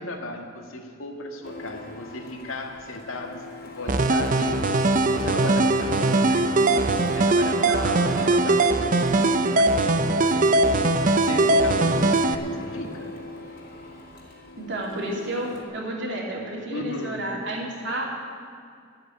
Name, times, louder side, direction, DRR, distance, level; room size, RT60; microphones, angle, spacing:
voice 1, 0.0-3.5 3.8-13.1 16.7-17.2, left 2 dB, 85° left, 3 dB, 1.7 m, -36 dB
Printer, 1.4-15.6, left 2 dB, 45° left, 2.3 m, -40 dB
sound 1, 3.9-12.3, right 2 dB, 40° right, 0.6 m, -21 dB
voice 2, 7.6-8.4 14.6-18.0, right 1 dB, 60° right, -2 dB, 2.8 m, -31 dB
13.5 x 8.0 x 9.7 m, 2.3 s
head